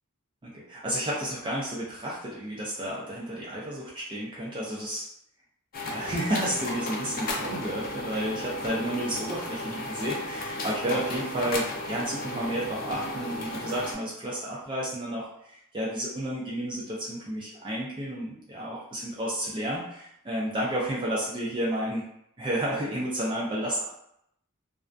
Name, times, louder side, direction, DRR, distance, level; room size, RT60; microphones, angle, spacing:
voice 1, 0.4-5.0 5.9-22.0 22.4-23.9, right 1 dB, 25° right, -5 dB, 0.4 m, -31 dB
sound 1, 5.7-13.9, left 1 dB, 45° left, 0.5 m, -34 dB
2.3 x 2.1 x 2.5 m, 0.75 s
head